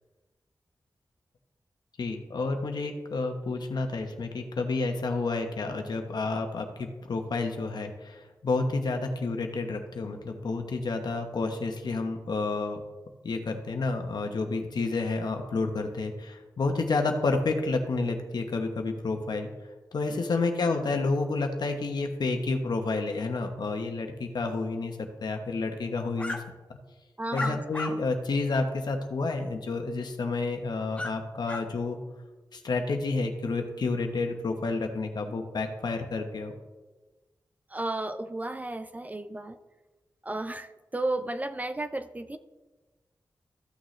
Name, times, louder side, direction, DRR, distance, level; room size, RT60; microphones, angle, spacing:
voice 1, 2.0-12.8 13.2-19.5 19.9-26.4 27.3-32.0 32.5-36.5, left 3 dB, 75° left, 5 dB, 1.1 m, -30 dB
sound 1, 26.2-26.4 27.3-27.9 28.5-28.6 31.0-31.1 31.5-31.6, left 2 dB, 15° left, 1.2 m, -33 dB
voice 2, 27.2-27.6 37.7-39.6 40.2-42.4, right 2 dB, 20° right, 10 dB, 0.5 m, -33 dB
14.0 x 6.4 x 3.3 m, 1.2 s
wide cardioid pair, 85°, 7 cm